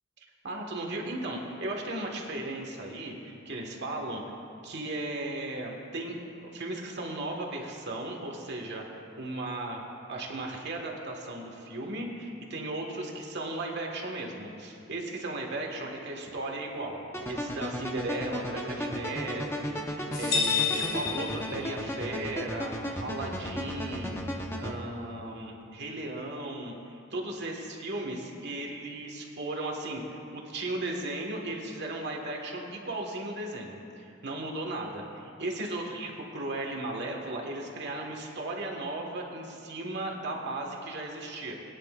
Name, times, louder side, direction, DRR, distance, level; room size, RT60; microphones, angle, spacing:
voice 1, 0.4-4.2 4.6-8.8 9.2-9.8 10.1-17.0 17.3-24.2 24.6-41.5, right 2 dB, 55° right, 0 dB, 1.6 m, -36 dB
sound 1, 17.1-24.8, equal, 10° left, 0.9 m, -35 dB
sound 2, 20.1-22.1, left 6 dB, 45° left, 2.1 m, -30 dB
21.5 x 9.9 x 2.5 m, 2.6 s
head